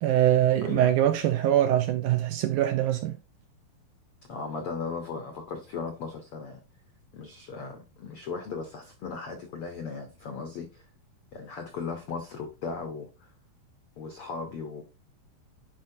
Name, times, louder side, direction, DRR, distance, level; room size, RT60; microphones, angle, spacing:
voice 1, 0.0-3.2, right 12 dB, 80° right, 1.9 m, -23 dB
voice 2, 0.6-0.9 4.3-6.6 7.1-10.8 11.3-13.3 14.0-14.8, left 5 dB, 80° left, 1.2 m, -37 dB
10.5 x 4.6 x 2.7 m
omnidirectional pair, 4.0 m